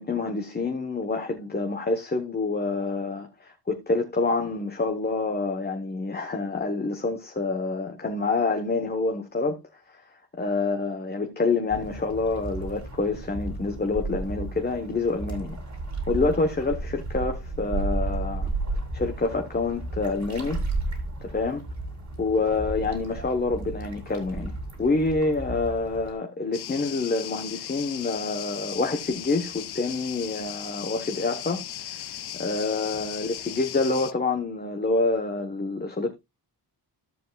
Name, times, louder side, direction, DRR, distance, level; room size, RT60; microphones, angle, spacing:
voice 1, 0.0-9.6 10.4-15.6 16.1-18.5 18.9-20.6 21.2-21.6 22.2-36.1, left 3 dB, 25° left, 1.0 m, -27 dB
sound 1, 11.7-26.1, right 2 dB, 45° right, 2.8 m, -33 dB
sound 2, 26.5-34.1, left 11 dB, 75° left, 0.7 m, -37 dB
14.0 x 7.3 x 2.3 m
wide cardioid pair, 160°, 39 cm